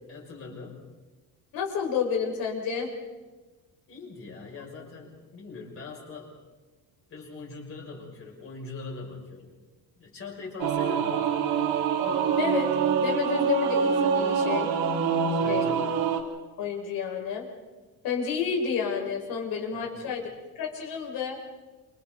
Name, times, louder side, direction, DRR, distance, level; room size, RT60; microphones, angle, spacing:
voice 1, 0.1-0.9 3.9-6.4 7.1-9.5 9.9-11.8 15.4-16.0 19.7-20.3, left 4 dB, 35° left, -1 dB, 6.5 m, -42 dB
voice 2, 1.5-2.9 12.4-14.7 15.4-15.7 16.6-17.5 18.0-20.3 20.6-21.4, left 7 dB, 65° left, 1 dB, 5.3 m, -30 dB
Singing / Musical instrument, 10.6-16.2, right 6 dB, 65° right, 3.2 m, -25 dB
28.5 x 27.0 x 4.1 m, 1.2 s
cardioid pair, 170°, 39 cm